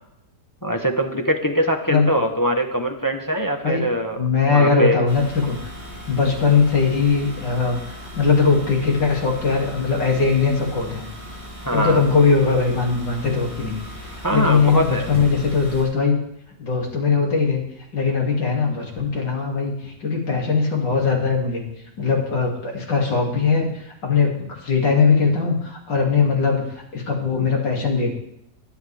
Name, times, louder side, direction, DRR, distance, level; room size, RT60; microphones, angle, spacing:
voice 1, 0.6-5.1 11.6-12.0 14.2-15.1, equal, 20° left, 2 dB, 0.6 m, -22 dB
voice 2, 4.2-5.6 6.1-7.8 8.1-11.1 11.7-13.8 14.0-16.2 16.6-17.6 17.9-21.6 22.0-28.2, left 5 dB, 85° left, -1 dB, 3.2 m, -20 dB
sound 1, 5.1-15.8, equal, 10° right, 4.5 m, -37 dB
22.5 x 8.4 x 3.4 m, 0.79 s
omnidirectional pair, 1.9 m